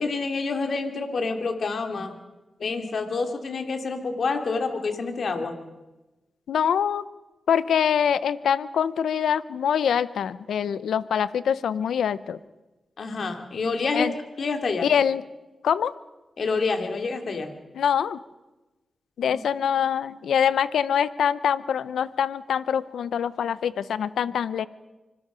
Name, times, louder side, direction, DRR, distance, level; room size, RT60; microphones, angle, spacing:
voice 1, 0.0-2.2 2.6-5.6 13.0-14.1 14.4-14.9 16.4-17.5 19.3-19.4, left 4 dB, 70° left, 5 dB, 2.6 m, -28 dB
voice 2, 6.5-7.0 7.5-12.4 13.9-14.1 14.8-15.2 15.6-15.9 17.8-18.2 19.2-24.7, left 8 dB, 90° left, 16 dB, 0.7 m, -24 dB
25.0 x 20.5 x 5.1 m, 1.1 s
cardioid pair, 45°, 0 cm